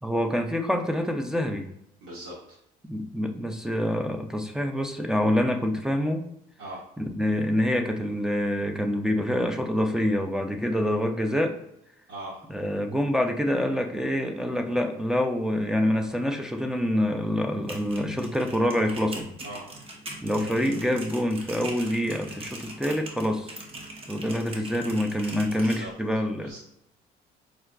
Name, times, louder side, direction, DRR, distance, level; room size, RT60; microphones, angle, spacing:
voice 1, 0.0-1.7 2.9-6.2 7.0-11.6 12.5-19.3 20.2-23.6 24.1-26.5, equal, 5° right, 3 dB, 0.3 m, -26 dB
voice 2, 2.0-2.6 6.6-6.9 12.1-12.5 19.4-19.7 25.5-25.9 26.4-26.6, right 1 dB, 85° right, -8 dB, 1.2 m, -40 dB
sound 1, 17.5-25.8, right 2 dB, 35° right, 0.7 m, -42 dB
4.6 x 2.3 x 2.2 m, 0.79 s
cardioid pair, 110°, 17 cm